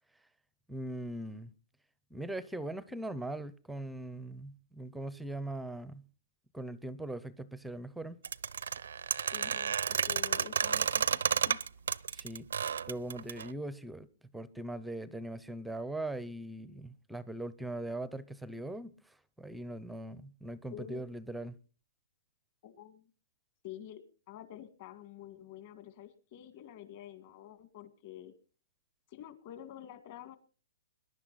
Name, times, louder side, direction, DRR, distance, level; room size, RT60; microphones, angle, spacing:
voice 1, 0.7-1.5 2.1-6.0 6.5-8.2 12.1-12.5 12.9-14.1 14.3-21.6, right 1 dB, ahead, 0.6 m, -40 dB
sound 1, 8.2-13.5, right 7 dB, 85° right, 0.6 m, -31 dB
voice 2, 9.3-11.6 20.7-21.0 22.6-23.0 23.6-28.3 29.1-30.4, left 11 dB, 35° left, 1.9 m, -48 dB
21.5 x 11.0 x 4.1 m
hypercardioid pair, 165°, 0 cm